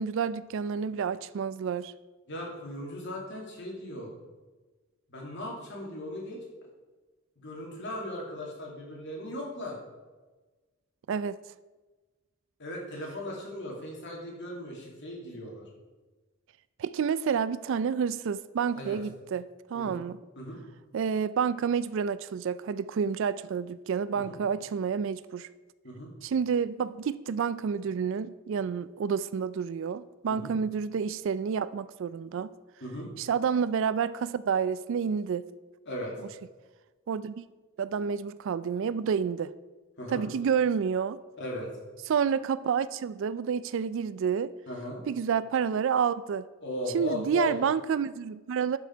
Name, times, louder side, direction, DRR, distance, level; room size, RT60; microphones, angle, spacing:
voice 1, 0.0-1.9 11.1-11.4 16.8-19.5 19.7-20.2 20.9-25.5 26.2-32.5 33.2-35.4 37.1-37.5 37.8-39.5 40.1-41.2 42.1-44.5 45.1-46.5 46.9-48.8, right 7 dB, 60° right, 0.3 m, -29 dB
voice 2, 2.3-4.1 5.1-6.4 7.4-9.8 12.6-15.7 18.7-19.0 19.7-20.0 20.4-20.6 24.2-24.4 25.8-26.1 30.3-30.5 32.8-33.1 35.9-36.1 40.0-40.3 41.4-41.7 44.7-45.0 46.6-47.5, left 1 dB, 55° left, 2.4 m, -37 dB
12.0 x 5.0 x 4.5 m
head